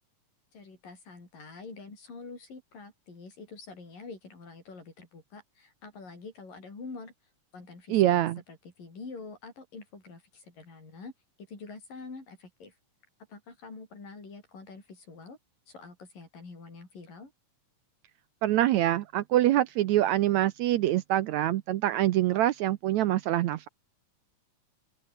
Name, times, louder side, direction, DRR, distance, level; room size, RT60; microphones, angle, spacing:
voice 1, 0.5-7.1 7.5-11.1 11.5-12.7 13.3-15.4 15.7-17.3, left 4 dB, 80° left, 9.2 m, -46 dB
voice 2, 7.9-8.4 18.4-23.7, right 14 dB, 70° right, 1.8 m, -25 dB
open air
omnidirectional pair, 3.8 m